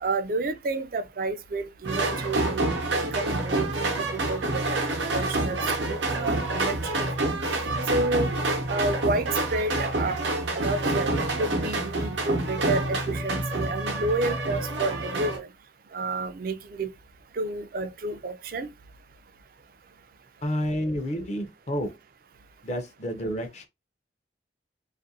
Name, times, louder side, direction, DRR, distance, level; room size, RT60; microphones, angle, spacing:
voice 1, 0.0-7.3 7.9-8.3 8.7-10.2 10.5-15.5 15.9-16.9 17.3-18.7, right 2 dB, 50° right, 0.4 m, -30 dB
sound 1, 1.8-15.4, right 2 dB, 85° right, 0.7 m, -27 dB
voice 2, 20.4-21.9 22.6-23.7, equal, 40° left, 0.5 m, -30 dB
2.6 x 2.4 x 2.7 m
head